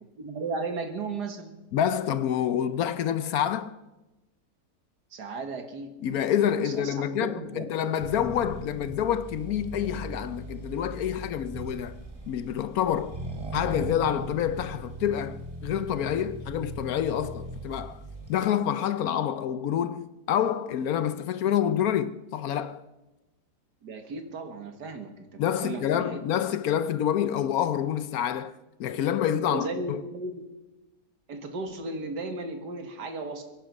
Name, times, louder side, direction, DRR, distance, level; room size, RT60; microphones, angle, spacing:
voice 1, 0.2-1.5 5.1-5.9 6.4-7.7 23.8-26.2 29.3-30.4 31.3-33.4, right 3 dB, 75° right, 2.2 m, -35 dB
voice 2, 1.7-3.8 6.0-12.0 12.3-13.2 13.5-18.0 18.3-22.8 25.4-28.5 28.8-30.0, left 9 dB, 70° left, 1.0 m, -27 dB
Accelerating revving vroom, 8.0-18.4, right 1 dB, 20° right, 1.9 m, -39 dB
23.5 x 10.0 x 5.3 m
omnidirectional pair, 1.8 m